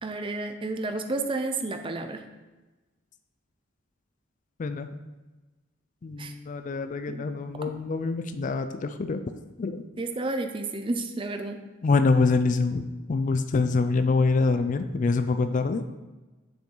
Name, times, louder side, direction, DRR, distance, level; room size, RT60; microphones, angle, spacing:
voice 1, 0.0-2.2 6.2-6.3 7.1-7.3 10.0-11.7, right 2 dB, 25° right, 6 dB, 0.5 m, -31 dB
voice 2, 6.0-9.2 9.6-9.8 11.8-15.8, left 3 dB, 40° left, 10 dB, 0.4 m, -25 dB
7.1 x 6.0 x 3.8 m, 1.2 s
head